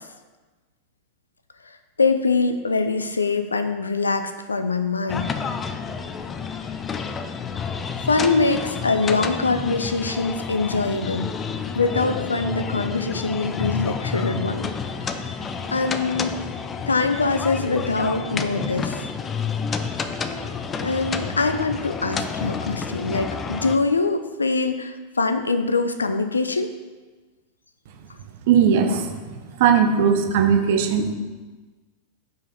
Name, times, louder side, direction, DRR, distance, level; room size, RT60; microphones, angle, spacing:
voice 1, 2.0-5.3 8.1-11.3 11.8-14.7 15.1-15.2 15.7-16.4 16.9-19.0 20.8-26.7, left 3 dB, 75° left, 8 dB, 0.5 m, -23 dB
sound 1, 5.1-23.8, left 5 dB, 20° left, 0.4 m, -30 dB
voice 2, 28.5-29.1 29.6-31.1, right 7 dB, 50° right, 6 dB, 0.7 m, -18 dB
5.6 x 4.9 x 5.6 m, 1.3 s
figure-of-eight pair, 90°, 0 cm